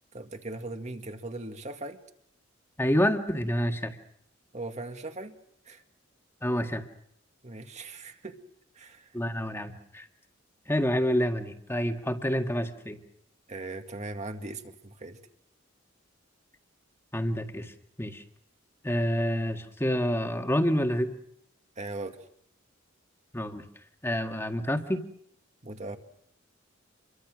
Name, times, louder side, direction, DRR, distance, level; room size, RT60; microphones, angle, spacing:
voice 1, 0.1-2.0 4.5-5.4 5.7-5.8 7.4-8.4 8.8-9.1 13.5-15.2 21.8-22.2 25.6-26.0, right 2 dB, 35° right, 6 dB, 1.9 m, -39 dB
voice 2, 2.8-4.0 6.4-6.8 9.1-10.1 10.7-13.0 17.1-17.7 18.0-18.2 18.8-21.1 23.3-23.6 24.0-25.0, equal, 15° left, 5 dB, 1.8 m, -28 dB
27.5 x 23.0 x 6.3 m, 0.71 s
head